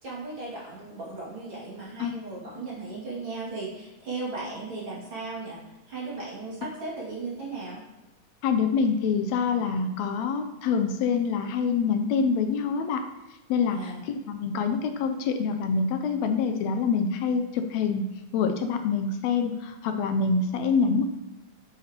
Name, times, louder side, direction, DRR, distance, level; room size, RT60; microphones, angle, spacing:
voice 1, 0.0-5.6 5.9-7.8 13.7-14.0, right 3 dB, 40° right, -7 dB, 2.9 m, -36 dB
voice 2, 8.4-13.0 13.5-21.1, left 5 dB, 80° left, 7 dB, 1.6 m, -26 dB
9.0 x 8.2 x 2.9 m, 1.0 s
omnidirectional pair, 3.6 m